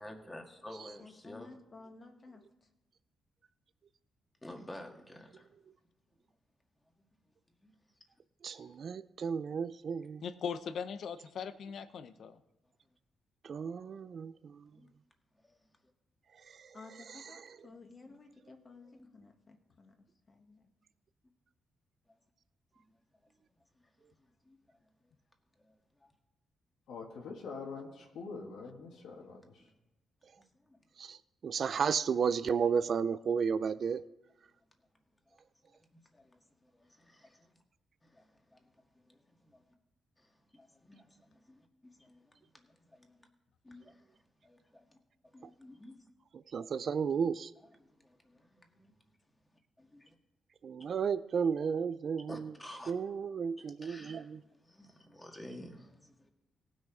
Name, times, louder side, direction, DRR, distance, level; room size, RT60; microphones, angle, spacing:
voice 1, 0.0-1.5 4.4-5.5 7.6-7.7 8.6-8.7 14.7-14.9 15.4-15.6 17.8-18.2 18.9-19.1 22.1-22.2 23.8-23.9 24.2-24.8 25.6-26.1 29.6-29.7 30.4-30.8 35.9-37.6 38.0-39.6 40.2-43.3 43.6-45.0 45.2-46.0 47.6-48.9 49.8-50.1 52.3-52.9 53.6-56.3, left 1 dB, 15° left, 1.8 m, -53 dB
voice 2, 1.0-2.4 16.7-20.0 20.3-20.7, left 3 dB, 35° left, 1.8 m, -54 dB
voice 3, 8.4-10.2 13.5-14.3 31.0-31.2 31.4-34.0 46.5-47.5 50.6-52.4 52.9-54.4, right 6 dB, 55° right, 0.4 m, -32 dB
voice 4, 10.2-12.4, left 6 dB, 70° left, 0.8 m, -40 dB
voice 5, 26.9-29.7, left 4 dB, 90° left, 2.0 m, -45 dB
18.0 x 6.4 x 4.9 m
cardioid pair, 105°, 0 cm